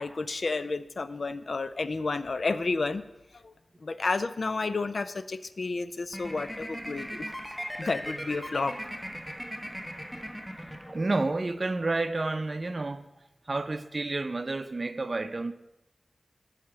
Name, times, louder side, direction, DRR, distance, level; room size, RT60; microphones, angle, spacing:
voice 1, 0.0-3.0 3.4-3.5 3.8-7.3 7.8-8.8, left 3 dB, 70° left, 0.4 m, -31 dB
sound 1, 6.1-11.3, equal, 5° left, 1.2 m, -39 dB
voice 2, 10.9-13.1 13.5-15.5, right 2 dB, 50° right, 0.5 m, -30 dB
8.5 x 5.1 x 7.0 m
cardioid pair, 45°, 0 cm